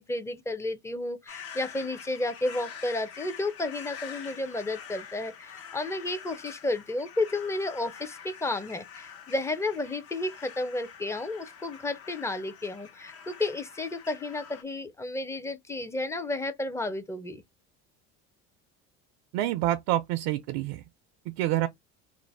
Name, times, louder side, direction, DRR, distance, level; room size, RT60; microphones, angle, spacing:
voice 1, 0.0-17.4, left 2 dB, 10° left, 0.5 m, -32 dB
sound 1, 1.3-14.6, left 7 dB, 50° left, 0.8 m, -46 dB
voice 2, 19.3-20.8 21.3-21.7, right 14 dB, 80° right, 0.5 m, -27 dB
2.5 x 2.0 x 3.2 m
supercardioid pair, 95°, 30 cm